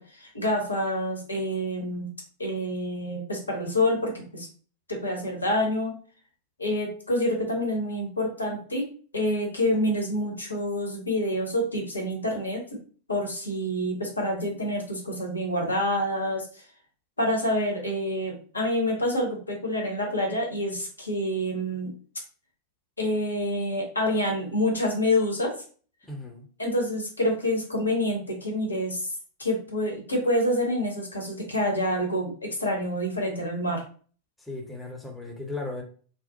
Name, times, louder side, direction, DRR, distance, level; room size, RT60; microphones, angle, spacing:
voice 1, 0.0-2.1 2.4-4.5 4.9-5.9 6.6-8.8 9.1-12.6 13.1-16.6 17.2-21.9 23.0-25.5 26.6-29.1 29.4-33.8, left 1 dB, 80° left, 0.8 m, -27 dB
voice 2, 26.0-26.5 34.4-35.8, left 2 dB, 5° left, 0.6 m, -36 dB
2.3 x 2.0 x 2.7 m
figure-of-eight pair, 90°, 0 cm